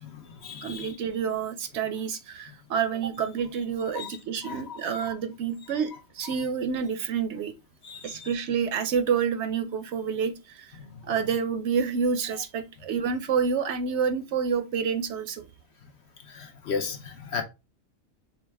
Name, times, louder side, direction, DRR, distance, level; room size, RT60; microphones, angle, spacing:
voice 1, 0.0-0.9 3.9-4.1 4.4-4.8 7.8-8.3 16.3-17.4, left 5 dB, 60° left, 1.0 m, -35 dB
voice 2, 0.6-7.5 8.0-10.8 11.0-15.5, right 6 dB, 65° right, 0.8 m, -28 dB
4.0 x 3.4 x 3.3 m
omnidirectional pair, 1.3 m